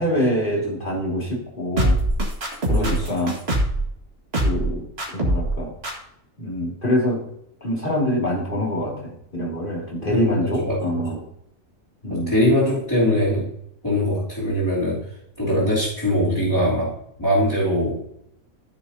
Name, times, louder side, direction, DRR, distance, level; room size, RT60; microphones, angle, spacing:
voice 1, 0.0-2.0 2.7-3.4 4.4-4.9 5.1-5.7 6.4-7.2 7.6-11.2 12.0-12.4, left 1 dB, 40° left, -2 dB, 2.8 m, -25 dB
sound 1, 1.8-3.8 4.3-4.7 5.0-5.5 5.8-5.9, right 1 dB, 50° right, 2.3 m, -22 dB
voice 2, 2.7-3.1 10.0-11.2 12.1-13.5 13.8-15.0 15.4-18.1, equal, 15° left, -11 dB, 3.2 m, -22 dB
14.5 x 6.9 x 2.8 m, 0.74 s
omnidirectional pair, 1.4 m